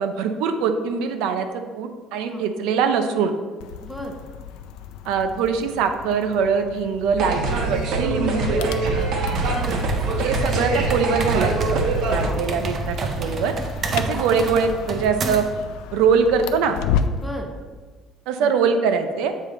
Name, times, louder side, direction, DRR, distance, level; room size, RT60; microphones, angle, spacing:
voice 1, 0.0-3.3 5.0-7.4 7.7-8.7 10.2-11.8 12.1-13.5 13.9-15.4 15.9-16.8 18.3-19.3, right 6 dB, 80° right, 7 dB, 0.6 m, -22 dB
sound 1, 3.6-17.3, left 7 dB, 85° left, 0.4 m, -33 dB
voice 2, 3.8-4.2 9.4-9.8 12.2-12.4 13.9-14.3 17.1-17.5 18.4-18.5, equal, ahead, 0 dB, 0.8 m, -35 dB
sound 2, 7.2-12.3, right 3 dB, 55° right, 1.2 m, -23 dB
sound 3, 9.3-15.6, right 4 dB, 30° right, 0.5 m, -30 dB
7.5 x 4.9 x 3.8 m, 1.4 s
cardioid pair, 175°, 0 cm